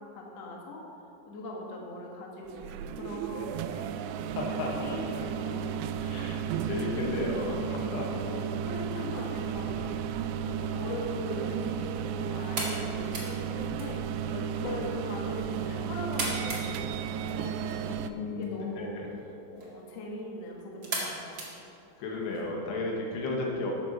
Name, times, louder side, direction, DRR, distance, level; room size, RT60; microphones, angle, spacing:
voice 1, 0.1-0.8 1.2-3.9 4.5-5.9 6.7-7.2 7.6-14.0 14.5-18.1 18.3-19.0 19.5-21.5, left 1 dB, 55° left, -1 dB, 1.8 m, -40 dB
sound 1, 2.5-18.1, right 8 dB, 85° right, 2.6 m, -34 dB
voice 2, 4.4-5.0 6.0-6.4 6.7-8.1 14.3-14.9 18.0-19.1 20.9-21.2 22.0-23.7, left 2 dB, 75° left, -1 dB, 3.5 m, -34 dB
sound 2, 12.3-22.4, right 2 dB, 45° right, 1.3 m, -41 dB
12.5 x 8.0 x 5.5 m, 2.7 s
omnidirectional pair, 5.1 m